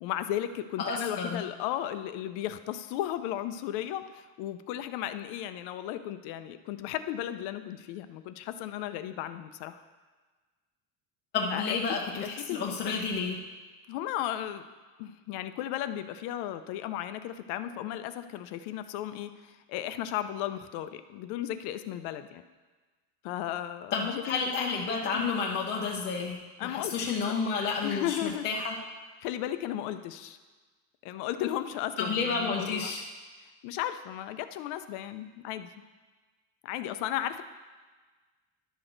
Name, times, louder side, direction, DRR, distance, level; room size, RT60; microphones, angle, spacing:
voice 1, 0.0-9.8 11.5-11.8 12.2-13.1 13.9-14.6 15.0-22.4 23.2-24.5 25.1-25.3 26.6-27.4 27.8-28.4 29.2-30.4 31.0-32.9 33.6-35.7 36.6-37.4, left 12 dB, 70° left, 11 dB, 0.6 m, -35 dB
voice 2, 0.8-1.4 11.3-13.4 23.9-28.8 32.0-33.0, left 5 dB, 25° left, -1 dB, 0.6 m, -31 dB
11.0 x 6.1 x 3.9 m, 1.3 s
cardioid pair, 160°, 42 cm